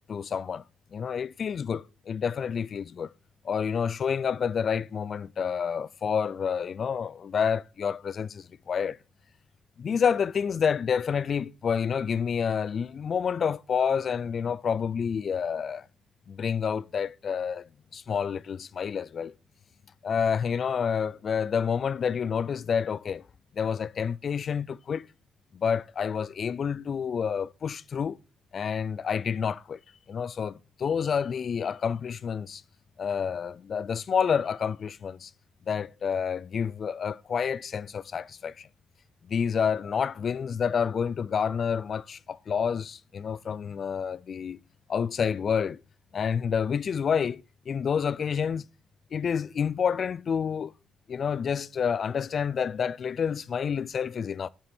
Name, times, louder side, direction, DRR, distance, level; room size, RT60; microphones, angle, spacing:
voice 1, 0.1-0.6 0.9-3.1 3.4-9.0 9.8-15.9 16.3-19.3 20.0-23.3 23.5-25.1 25.5-28.2 28.5-29.8 30.1-32.6 33.0-35.3 35.7-38.7 39.2-44.6 44.9-45.8 46.1-48.7 49.1-50.7 51.1-54.5, left 7 dB, 50° left, 0.4 m, -29 dB
9.6 x 9.3 x 4.3 m
cardioid pair, 90°, 0 cm